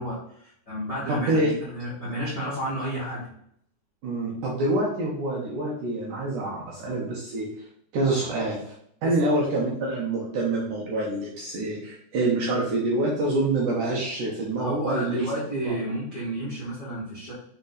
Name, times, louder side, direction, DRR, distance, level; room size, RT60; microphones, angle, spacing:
voice 1, 0.0-3.3 9.0-9.1 14.6-17.3, right 1 dB, 40° left, -9 dB, 1.4 m, -31 dB
voice 2, 1.1-1.5 4.0-7.7 7.9-8.7 9.0-15.3 15.6-15.7, right 2 dB, 70° right, -3 dB, 2.1 m, -26 dB
6.0 x 4.1 x 4.0 m, 0.67 s
omnidirectional pair, 4.7 m